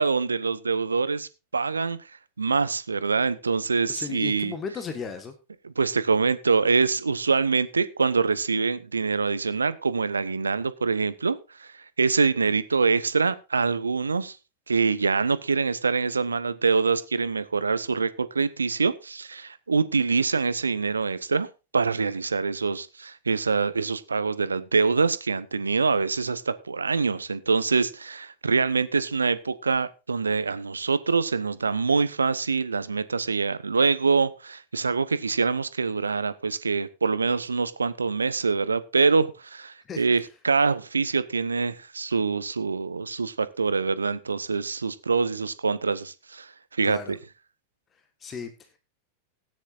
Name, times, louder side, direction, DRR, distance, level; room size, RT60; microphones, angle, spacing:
voice 1, 0.0-2.0 2.4-4.5 5.6-14.4 14.7-21.5 21.7-47.2, right 4 dB, 75° right, 15 dB, 0.9 m, -25 dB
voice 2, 3.9-5.3 39.8-40.2 46.8-47.1 48.2-48.5, left 6 dB, 25° left, 8 dB, 1.5 m, -35 dB
17.5 x 9.7 x 2.6 m, 0.29 s
figure-of-eight pair, 90°, 0 cm